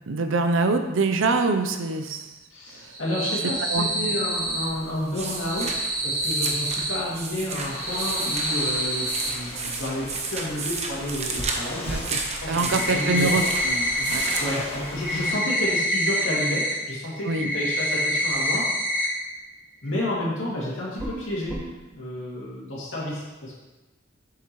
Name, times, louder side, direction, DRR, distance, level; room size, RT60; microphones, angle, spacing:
voice 1, 0.1-2.3 3.7-3.9 11.9-12.0 12.5-13.4 14.0-14.4 17.3-17.5, right 3 dB, 75° right, 7 dB, 0.6 m, -24 dB
voice 2, 2.5-18.6 19.8-21.6 21.9-23.5, left 1 dB, 70° left, -6 dB, 2.5 m, -31 dB
sound 1, 2.8-4.7 5.2-7.0 7.5-9.3 11.4-11.5 11.9-12.0 12.4-14.4 14.7-16.7 17.1-19.1 19.4-19.5 19.9-20.0 21.0-21.2 21.5-21.6, equal, 10° right, 1.3 m, -27 dB
sound 2, 4.3-15.3, right 3 dB, 35° right, 0.8 m, -33 dB
sound 3, 7.7-15.3, left 1 dB, 30° left, 1.3 m, -39 dB
7.6 x 7.2 x 3.1 m, 1.1 s
head